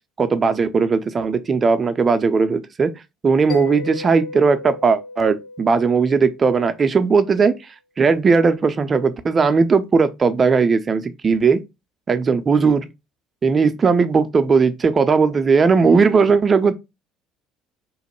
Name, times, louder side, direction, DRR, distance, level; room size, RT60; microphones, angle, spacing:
voice 1, 0.2-2.9 3.2-7.5 8.0-11.6 12.1-12.9 13.4-16.7, right 5 dB, 35° right, 0.4 m, -17 dB
Mallet percussion, 3.5-7.0, left 3 dB, 50° left, 0.6 m, -35 dB
3.0 x 2.1 x 2.9 m
figure-of-eight pair, 60°, 0 cm